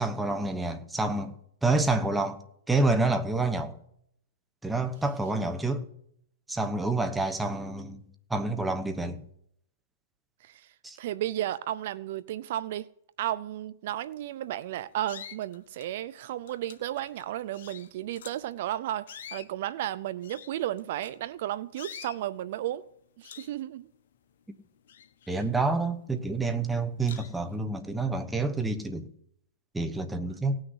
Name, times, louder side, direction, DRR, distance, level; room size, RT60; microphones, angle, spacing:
voice 1, 0.0-1.3 1.6-2.4 2.7-3.8 4.6-5.9 6.5-8.0 8.3-9.2 10.8-11.0 25.3-29.1 29.7-30.6, right 3 dB, 5° right, 1.0 m, -28 dB
voice 2, 10.4-12.9 13.2-22.8 23.2-23.9, right 13 dB, 50° right, 0.5 m, -33 dB
sound 1, 14.2-14.5 15.0-16.0 16.5-18.5 19.0-21.4 21.8-22.2 22.7-22.9 23.2-24.4 24.7-26.0 26.4-26.5 27.0-27.5, left 9 dB, 60° left, 1.4 m, -47 dB
17.5 x 6.4 x 9.7 m
hypercardioid pair, 150°, 0 cm